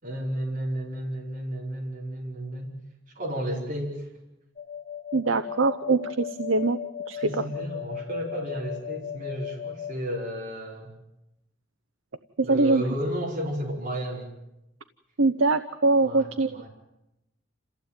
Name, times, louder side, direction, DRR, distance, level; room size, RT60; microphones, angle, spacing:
voice 1, 0.0-2.7 3.2-4.1 7.2-10.9 12.4-14.3 15.9-16.7, equal, 45° right, -2 dB, 5.3 m, -32 dB
sound 1, 4.6-9.9, left 9 dB, 40° left, 2.0 m, -37 dB
voice 2, 5.1-6.8 7.1-7.4 12.4-12.8 15.2-16.5, right 3 dB, 80° right, 9 dB, 0.9 m, -23 dB
28.5 x 15.5 x 9.1 m, 0.92 s
head